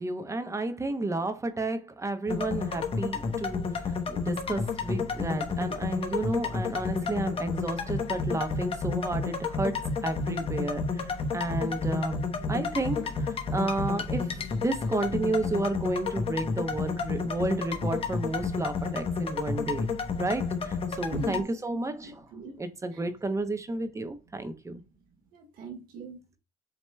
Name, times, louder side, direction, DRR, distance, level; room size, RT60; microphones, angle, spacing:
voice 1, 0.0-12.2 12.5-22.2 22.6-24.8, right 2 dB, 20° right, 0.8 m, -32 dB
sound 1, 2.3-21.4, left 4 dB, 40° left, 0.9 m, -31 dB
voice 2, 21.1-22.6 22.9-23.0 25.3-26.2, right 3 dB, 70° right, 1.6 m, -42 dB
7.3 x 2.9 x 2.2 m
supercardioid pair, 85°, 15 cm